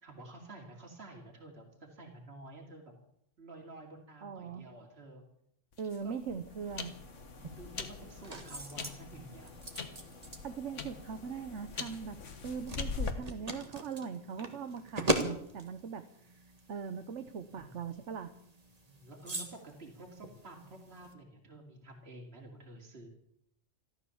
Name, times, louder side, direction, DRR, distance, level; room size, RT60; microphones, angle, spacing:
voice 1, 0.0-2.9 3.4-5.2 6.0-6.4 7.6-9.5 17.5-17.8 18.9-23.1, right 2 dB, 55° right, 1 dB, 2.9 m, -50 dB
voice 2, 4.2-4.7 5.8-7.0 10.4-12.2 12.4-16.0 16.3-16.4 16.7-18.3, right 6 dB, 75° right, 8 dB, 1.3 m, -40 dB
sound 1, 5.7-13.1, left 5 dB, 80° left, 1.7 m, -42 dB
sound 2, 7.4-21.1, right 1 dB, 30° right, 1.8 m, -41 dB
14.5 x 13.0 x 7.1 m, 0.73 s
omnidirectional pair, 1.2 m